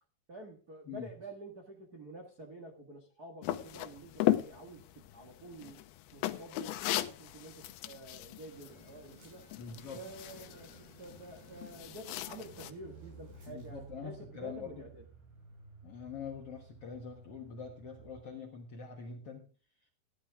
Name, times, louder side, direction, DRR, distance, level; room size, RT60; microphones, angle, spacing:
voice 1, 0.3-5.8 6.1-9.5 9.9-15.0, right 2 dB, 65° right, 1 dB, 0.9 m, -49 dB
sound 1, 3.4-12.7, left 14 dB, 80° left, 2.6 m, -37 dB
sound 2, 8.5-13.9, right 2 dB, 90° right, 8.9 m, -58 dB
voice 2, 9.6-10.0 13.5-14.8 15.8-19.5, left 6 dB, 60° left, 2 dB, 1.6 m, -44 dB
Car, 12.2-18.4 18.7-18.8, right 4 dB, 30° right, 3.7 m, -55 dB
15.0 x 11.0 x 3.5 m, 0.37 s
omnidirectional pair, 4.6 m